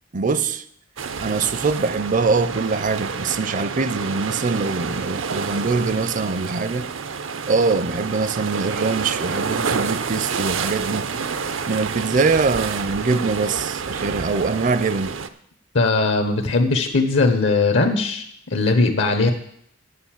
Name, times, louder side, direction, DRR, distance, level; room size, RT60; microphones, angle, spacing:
voice 1, 0.1-0.6 1.2-6.9 7.5-11.1 11.7-15.2, right 4 dB, 45° right, 0.5 m, -23 dB
sound 1, 1.0-15.3, right 5 dB, 80° right, 0.6 m, -28 dB
voice 2, 15.7-19.3, left 3 dB, 75° left, 0.9 m, -19 dB
8.9 x 6.6 x 7.3 m
head